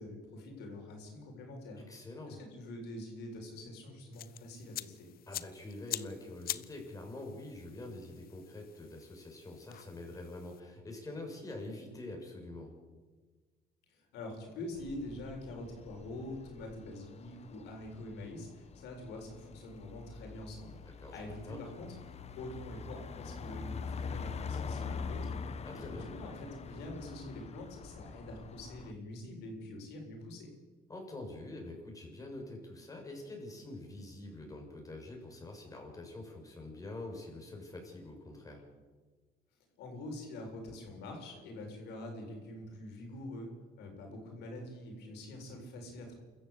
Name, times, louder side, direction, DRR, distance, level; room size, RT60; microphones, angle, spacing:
voice 1, 0.0-1.8 2.3-5.1 13.9-22.0 22.4-30.5 39.8-46.1, left 1 dB, 80° left, 2 dB, 7.3 m, -45 dB
voice 2, 1.8-2.4 5.3-12.7 21.0-21.6 25.6-26.1 30.9-38.6, left 2 dB, 20° left, 1 dB, 7.4 m, -45 dB
sound 1, 4.1-10.6, left 13 dB, 60° left, 0.9 m, -45 dB
sound 2, 14.8-28.9, left 5 dB, 40° left, 1.4 m, -44 dB
28.0 x 14.5 x 8.4 m, 1.4 s
cardioid pair, 110°, 17 cm